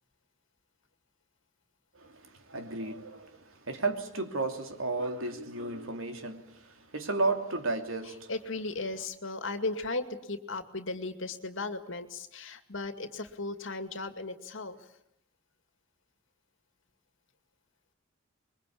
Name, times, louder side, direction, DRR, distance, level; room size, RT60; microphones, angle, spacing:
voice 1, 1.9-8.3, right 3 dB, 85° right, 2.8 m, -33 dB
voice 2, 8.3-14.8, left 3 dB, 75° left, 2.3 m, -36 dB
25.5 x 22.5 x 8.6 m
head